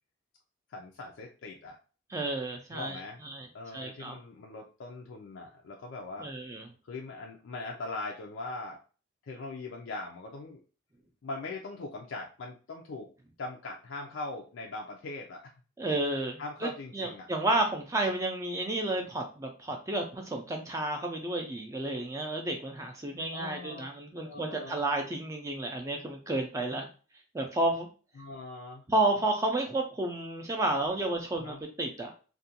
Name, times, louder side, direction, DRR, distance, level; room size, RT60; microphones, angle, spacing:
voice 1, 0.7-1.8 2.7-3.2 3.5-6.3 6.8-8.8 9.2-10.6 11.2-13.1 13.4-15.5 16.4-17.3 23.3-23.8 24.2-24.9 28.2-28.9 31.4-31.6, left 3 dB, 80° left, 1 dB, 0.4 m, -41 dB
voice 2, 2.1-3.5 3.7-4.2 6.2-6.7 15.8-26.9 27.3-27.9 28.9-32.1, right 2 dB, 15° right, 3 dB, 0.3 m, -31 dB
2.4 x 2.2 x 2.7 m, 0.36 s
head